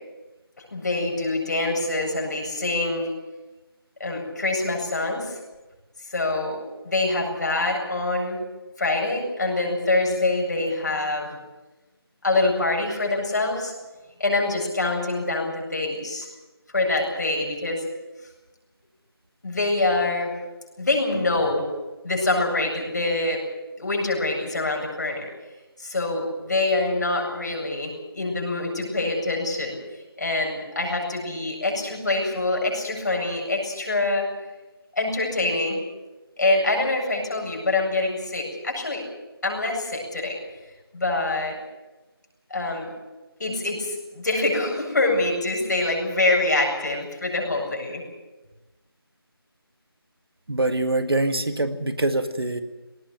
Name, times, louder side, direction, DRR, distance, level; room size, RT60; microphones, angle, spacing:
voice 1, 0.7-3.1 4.0-5.4 6.1-6.6 6.8-8.4 8.8-11.4 12.2-13.7 14.2-16.3 16.7-17.8 19.4-20.3 20.8-21.7 22.0-23.4 23.8-25.3 25.8-29.8 30.2-34.3 35.0-35.8 36.4-39.0 39.4-40.4 40.9-41.5 42.5-42.9 43.4-48.0, left 2 dB, 45° left, 0 dB, 7.9 m, -25 dB
voice 2, 50.5-52.6, right 2 dB, 70° right, 9 dB, 2.0 m, -24 dB
19.5 x 18.5 x 9.1 m, 1.1 s
figure-of-eight pair, 170°, 13 cm